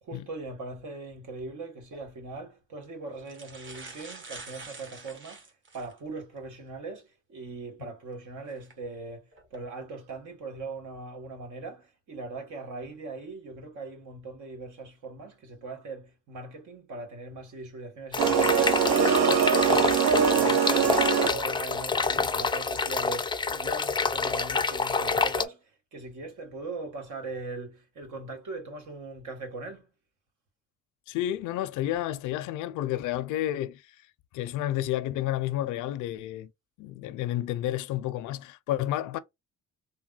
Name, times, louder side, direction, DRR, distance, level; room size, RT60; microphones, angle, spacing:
voice 1, 0.0-5.4 5.7-18.8 19.2-29.9, right 3 dB, 75° right, 1.6 m, -40 dB
sound 1, 1.8-2.0 2.8-2.9 3.2-6.0 6.5-6.6 8.5-8.7 9.3-9.6, right 3 dB, 40° right, 1.4 m, -46 dB
sound 2, 18.1-25.4, left 4 dB, 15° left, 0.4 m, -27 dB
sound 3, 18.2-21.6, right 7 dB, 60° right, 0.5 m, -23 dB
voice 2, 31.1-33.9 34.3-36.5 36.8-39.2, left 13 dB, 85° left, 0.5 m, -31 dB
3.4 x 2.2 x 2.3 m
cardioid pair, 90°, 30 cm